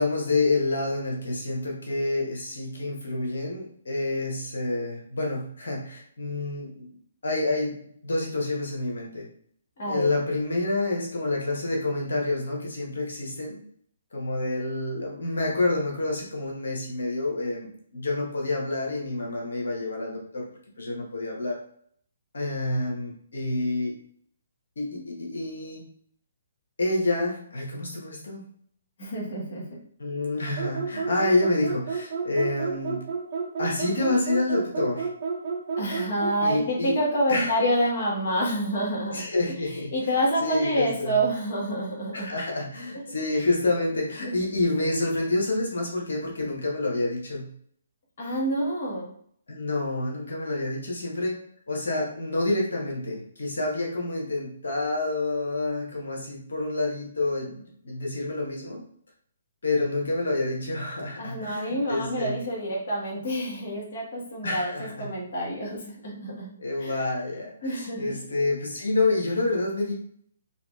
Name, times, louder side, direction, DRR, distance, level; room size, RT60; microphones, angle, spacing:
voice 1, 0.0-6.9 7.2-7.8 8.0-9.3 9.9-13.6 14.1-20.4 20.8-21.6 22.3-23.9 24.8-25.8 26.8-28.4 30.0-33.0 33.6-35.1 36.4-36.9 37.3-37.6 39.1-41.2 42.1-47.5 49.5-51.3 51.7-58.8 59.6-62.4 64.4-65.1 66.6-69.9, left 2 dB, 70° left, -1 dB, 0.9 m, -28 dB
voice 2, 9.8-10.1 29.0-29.7 35.8-39.3 39.6-42.3 44.2-44.3 48.2-49.1 61.2-66.5 66.8-66.9 67.6-68.1, equal, 55° left, -4 dB, 1.2 m, -28 dB
sound 1, 30.6-36.4, right 5 dB, 35° right, 0.5 m, -31 dB
2.7 x 2.7 x 2.3 m, 0.63 s
figure-of-eight pair, 135°, 0 cm